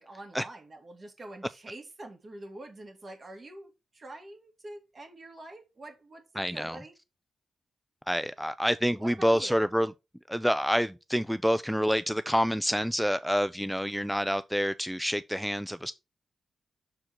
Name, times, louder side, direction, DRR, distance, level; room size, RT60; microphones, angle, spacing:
voice 1, 0.0-6.9 9.0-9.6, right 2 dB, 45° right, 2.1 m, -46 dB
voice 2, 6.4-6.8 8.1-9.9 10.3-15.9, equal, ahead, 0.3 m, -27 dB
6.4 x 4.4 x 4.3 m
cardioid pair, 90°, 0 cm